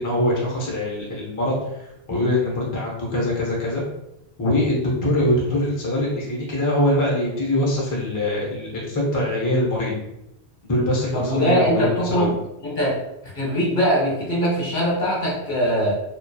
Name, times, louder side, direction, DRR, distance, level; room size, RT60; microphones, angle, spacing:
voice 1, 0.0-3.8 4.4-9.9 10.7-12.3, left 1 dB, 25° left, -4 dB, 0.5 m, -23 dB
voice 2, 11.1-12.4 12.6-13.0 13.3-16.0, equal, 50° left, -4 dB, 0.9 m, -21 dB
2.7 x 2.2 x 2.2 m, 0.87 s
omnidirectional pair, 1.1 m